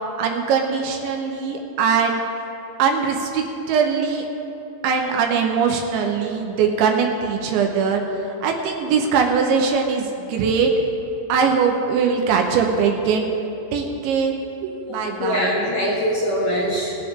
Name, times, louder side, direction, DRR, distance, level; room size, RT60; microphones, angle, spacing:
voice 1, 0.2-2.2 2.8-4.3 4.8-8.0 8.4-10.7 11.3-13.3 13.7-14.4 14.6-15.5, right 6 dB, 75° right, 2 dB, 3.0 m, -21 dB
voice 2, 14.8-17.0, equal, 65° left, -6 dB, 2.3 m, -23 dB
19.5 x 10.0 x 3.7 m, 2.9 s
omnidirectional pair, 5.6 m